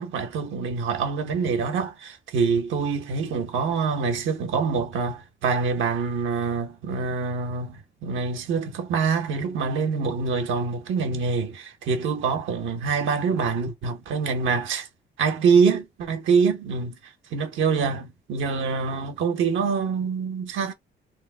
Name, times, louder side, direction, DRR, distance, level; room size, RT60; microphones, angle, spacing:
voice 1, 0.0-14.9 15.2-17.0 17.3-20.7, right 5 dB, 75° right, 0.8 m, -25 dB
3.0 x 2.0 x 3.3 m
cardioid pair, 90°, 20 cm